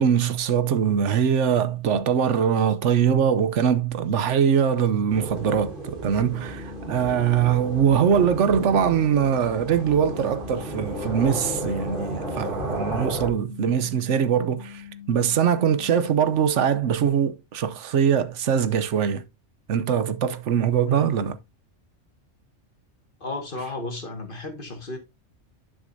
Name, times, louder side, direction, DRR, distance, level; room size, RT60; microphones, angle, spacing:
voice 1, 0.0-19.2 19.7-21.4, right 8 dB, 75° right, 1.0 m, -22 dB
sound 1, 5.1-13.3, right 1 dB, 45° right, 2.8 m, -33 dB
sound 2, 6.2-16.2, left 10 dB, 70° left, 1.2 m, -43 dB
voice 2, 20.9-21.3 23.2-25.0, left 2 dB, 45° left, 1.9 m, -34 dB
11.0 x 6.2 x 2.7 m
omnidirectional pair, 1.3 m